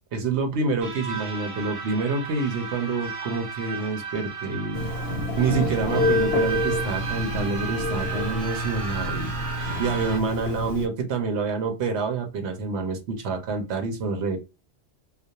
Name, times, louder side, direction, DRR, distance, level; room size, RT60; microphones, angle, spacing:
voice 1, 0.1-4.9 5.4-9.4 9.8-14.4, right 4 dB, 75° right, 4 dB, 0.9 m, -27 dB
sound 1, 0.8-10.2, right 5 dB, 55° right, 0.4 m, -34 dB
Telephone, 4.7-10.9, left 1 dB, 65° left, 0.8 m, -28 dB
2.3 x 2.0 x 2.7 m, 0.29 s
omnidirectional pair, 1.2 m